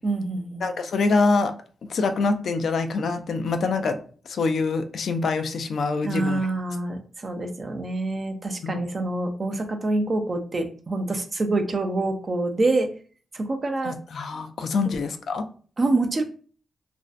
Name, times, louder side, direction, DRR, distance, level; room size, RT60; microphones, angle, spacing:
voice 1, 0.0-0.7 6.0-12.9 13.3-14.0 14.8-14.9 15.8-16.2, right 2 dB, 35° right, 6 dB, 0.4 m, -26 dB
voice 2, 0.6-1.5 1.9-4.0 4.3-6.4 8.6-8.8 13.8-15.4, left 4 dB, 70° left, 8 dB, 0.3 m, -25 dB
2.5 x 2.1 x 2.4 m, 0.42 s
cardioid pair, 80°, 0 cm